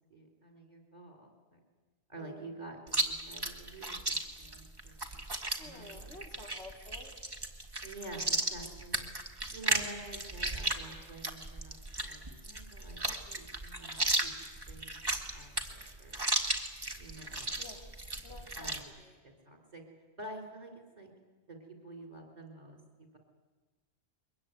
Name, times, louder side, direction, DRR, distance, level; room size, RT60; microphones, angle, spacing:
voice 1, 0.1-1.6 2.1-5.2 5.6-6.0 7.8-9.1 9.5-13.0 13.3-14.3 14.7-16.2 16.9-17.6 18.4-19.8 20.2-21.1 21.5-23.2, right 2 dB, 40° right, 1 dB, 4.0 m, -49 dB
voice 2, 2.2-2.5 5.6-7.1 13.3-13.5 17.6-17.9 18.2-19.2, left 2 dB, 90° left, 1 dB, 3.5 m, -51 dB
Chewing mastication, 2.9-18.8, right 2 dB, 20° right, 1.9 m, -35 dB
23.0 x 21.0 x 9.3 m, 1.3 s
omnidirectional pair, 1.1 m